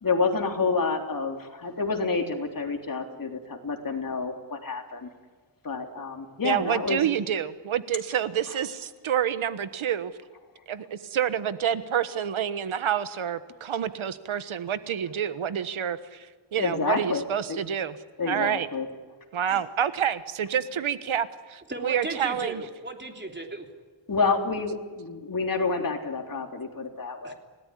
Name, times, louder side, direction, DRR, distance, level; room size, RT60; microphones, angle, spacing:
voice 1, 0.0-5.1 5.6-7.0 16.6-17.2 17.5-17.6 18.2-18.9 19.5-19.6 24.1-27.3, left 4 dB, 45° left, 3 dB, 3.5 m, -28 dB
voice 2, 6.4-10.1 10.7-17.9 18.3-18.7 19.3-22.6, right 9 dB, 85° right, 12 dB, 1.3 m, -28 dB
voice 3, 21.7-23.7 27.2-27.3, right 2 dB, 20° right, 3 dB, 3.4 m, -36 dB
29.5 x 18.0 x 10.0 m, 1.4 s
wide cardioid pair, 125°, 47 cm